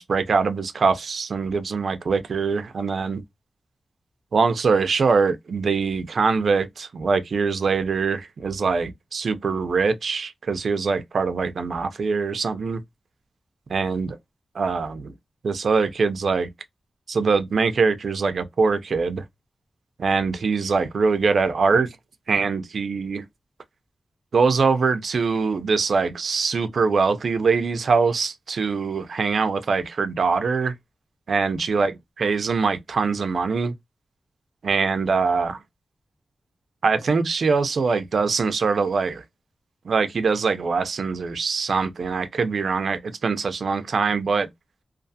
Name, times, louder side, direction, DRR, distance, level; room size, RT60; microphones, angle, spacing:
voice 1, 0.0-3.2 4.3-12.8 13.7-14.2 14.5-15.1 15.4-16.5 17.1-19.2 20.0-21.9 22.3-23.2 24.3-30.7 31.3-31.9 32.2-33.7 34.6-35.6 36.8-39.2 39.8-44.5, right 4 dB, 65° right, 0.4 m, -23 dB
2.4 x 2.3 x 2.6 m
wide cardioid pair, 135°, 0 cm